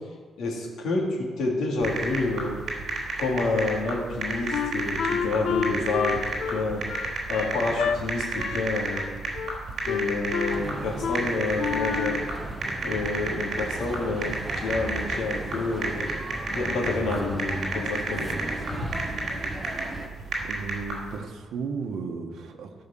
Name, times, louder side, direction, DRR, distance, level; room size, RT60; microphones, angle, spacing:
voice 1, 0.4-2.6 3.2-6.2 6.5-6.8 7.3-9.0 9.8-12.2 12.8-16.0 16.5-18.3 18.8-18.9, left 3 dB, 75° left, -2 dB, 3.2 m, -28 dB
sound 1, 1.8-21.2, right 3 dB, 45° right, 3.8 m, -32 dB
Wind instrument woodwind instrument, 4.5-8.0 8.4-8.7 8.9-9.6 9.9-10.6 11.0-11.2 11.6-12.3, left 7 dB, 55° left, 0.5 m, -29 dB
sound 2, 10.5-20.1, right 1 dB, 15° right, 1.0 m, -37 dB
voice 2, 20.4-22.7, right 5 dB, 65° right, 3 dB, 1.4 m, -34 dB
15.0 x 5.8 x 7.5 m, 1.4 s
cardioid pair, 175°, 0 cm